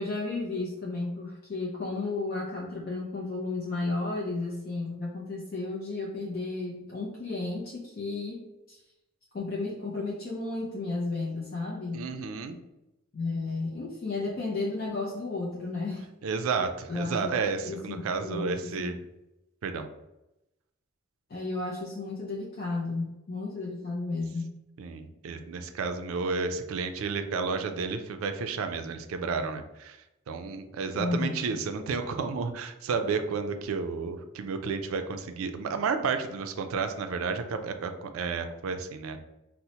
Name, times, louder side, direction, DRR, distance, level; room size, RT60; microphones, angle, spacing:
voice 1, 0.0-8.8 9.3-12.1 13.1-16.1 16.9-17.3 17.6-18.9 21.3-24.6 30.9-31.6, left 3 dB, 45° left, -3 dB, 0.4 m, -33 dB
voice 2, 11.9-12.6 16.2-19.0 19.6-19.9 24.8-30.0 30.3-39.2, right 5 dB, 80° right, 7 dB, 0.3 m, -31 dB
4.2 x 2.0 x 2.8 m, 0.94 s
head